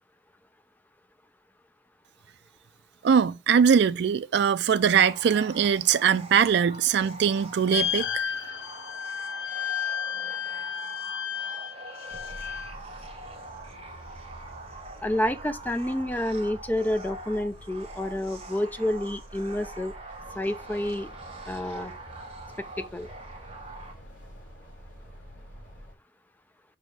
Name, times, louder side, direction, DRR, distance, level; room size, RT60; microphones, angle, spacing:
voice 1, 3.0-8.3, right 7 dB, 60° right, 0.3 m, -22 dB
sound 1, 4.8-23.9, right 2 dB, 30° right, 1.3 m, -44 dB
sound 2, 7.7-12.7, left 8 dB, 65° left, 0.6 m, -32 dB
sound 3, 12.1-25.9, equal, 45° left, 2.7 m, -47 dB
voice 2, 15.0-19.9 20.4-21.1 21.5-21.9 22.6-23.1, left 1 dB, 10° left, 0.4 m, -29 dB
5.0 x 4.2 x 4.6 m
head